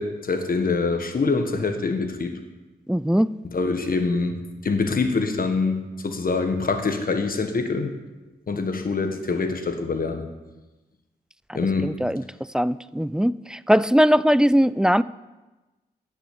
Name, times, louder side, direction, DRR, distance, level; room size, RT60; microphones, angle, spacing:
voice 1, 0.0-2.4 3.5-7.9 8.5-10.3 11.5-11.9, left 4 dB, 55° left, 6 dB, 1.4 m, -25 dB
voice 2, 2.9-3.3 11.5-12.2 12.5-15.0, equal, 5° right, 18 dB, 0.3 m, -20 dB
10.0 x 6.1 x 8.0 m, 1.1 s
cardioid pair, 45°, 17 cm